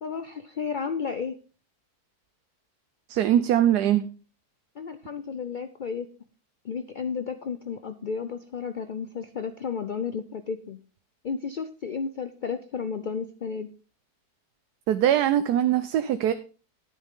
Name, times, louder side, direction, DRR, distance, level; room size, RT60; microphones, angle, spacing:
voice 1, 0.0-1.4 4.8-6.1 6.6-10.8 11.2-13.7, left 6 dB, 75° left, 10 dB, 0.4 m, -32 dB
voice 2, 3.1-4.1 14.9-16.3, right 11 dB, 85° right, 10 dB, 1.2 m, -22 dB
10.5 x 9.7 x 3.6 m, 0.34 s
omnidirectional pair, 1.7 m